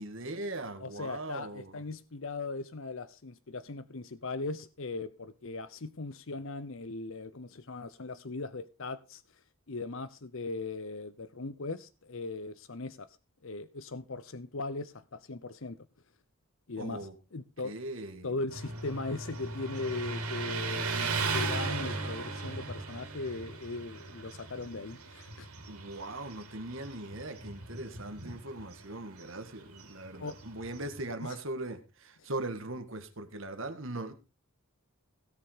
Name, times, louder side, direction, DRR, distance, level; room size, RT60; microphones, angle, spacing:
voice 1, 0.0-1.8 16.8-17.2 17.6-18.3 25.7-34.1, right 2 dB, 60° right, 1.9 m, -40 dB
voice 2, 0.8-9.2 9.7-13.1 13.4-15.8 16.7-17.8 18.2-25.5 30.2-30.3 31.2-31.4, left 3 dB, 60° left, 0.8 m, -39 dB
Motorcycle, 18.5-31.1, right 3 dB, 85° right, 3.1 m, -37 dB
17.0 x 7.0 x 5.0 m
head